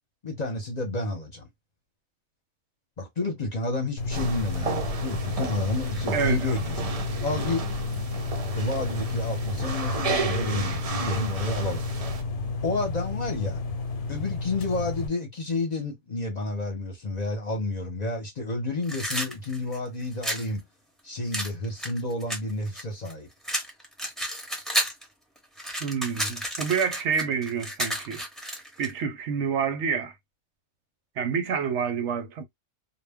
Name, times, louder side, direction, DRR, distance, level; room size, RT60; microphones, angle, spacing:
voice 1, 0.2-1.5 3.0-6.8 7.2-7.6 8.5-11.8 12.6-13.6 14.1-20.6 21.0-23.3, left 2 dB, 40° left, 0.7 m, -30 dB
sound 1, 4.0-15.1, left 3 dB, 80° left, 0.9 m, -31 dB
sound 2, 4.1-12.2, right 4 dB, 50° right, 0.4 m, -33 dB
voice 2, 6.1-6.5 25.8-28.2 28.8-30.1 31.2-32.4, right 6 dB, 75° right, 0.9 m, -28 dB
sound 3, 18.8-20.5 21.3-23.1 23.4-25.0 25.4-28.9, equal, ahead, 0.7 m, -31 dB
2.2 x 2.1 x 3.4 m
omnidirectional pair, 1.2 m